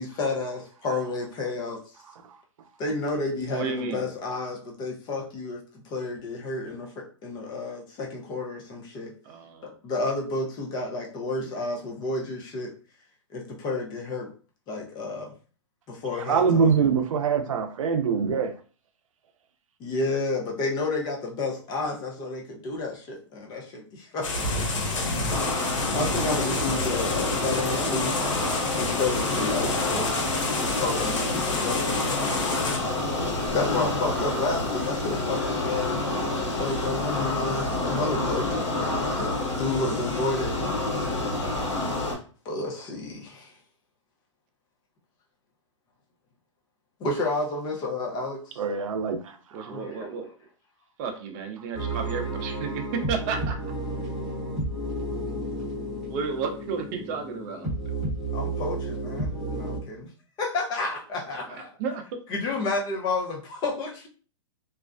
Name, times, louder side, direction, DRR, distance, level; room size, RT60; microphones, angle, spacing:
voice 1, 0.0-1.8 2.8-9.1 9.6-12.7 13.3-14.3 14.7-15.3 15.9-16.7 19.8-25.0 25.9-28.4 28.7-30.1 30.6-31.8 33.5-36.0 36.6-38.5 39.1-40.5 42.4-43.5 47.0-48.6 49.7-50.2 58.3-60.1 60.4-61.7 62.3-64.1, left 3 dB, 25° left, 0.6 m, -31 dB
voice 2, 3.5-4.1 9.2-9.7 49.5-50.3 51.0-53.7 56.1-57.7 61.3-62.2, right 5 dB, 35° right, 0.5 m, -32 dB
voice 3, 16.2-18.5 48.6-49.8, right 6 dB, 90° right, 0.5 m, -24 dB
sound 1, 24.2-32.8, left 2 dB, 80° left, 0.9 m, -30 dB
sound 2, 25.3-42.2, left 2 dB, 60° left, 1.1 m, -28 dB
sound 3, 51.7-59.8, right 2 dB, ahead, 0.9 m, -32 dB
2.4 x 2.1 x 2.4 m
hypercardioid pair, 140°, 17 cm